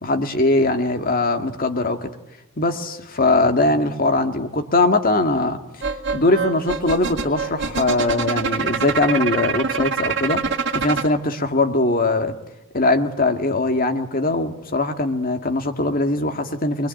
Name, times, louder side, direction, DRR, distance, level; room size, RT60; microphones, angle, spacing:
voice 1, 0.0-2.1 2.6-5.6 6.1-10.4 10.7-12.3 12.7-16.9, left 2 dB, 45° left, 6 dB, 2.0 m, -21 dB
sound 1, 5.8-11.1, right 5 dB, 60° right, 2.1 m, -25 dB
26.0 x 21.5 x 9.1 m, 0.93 s
head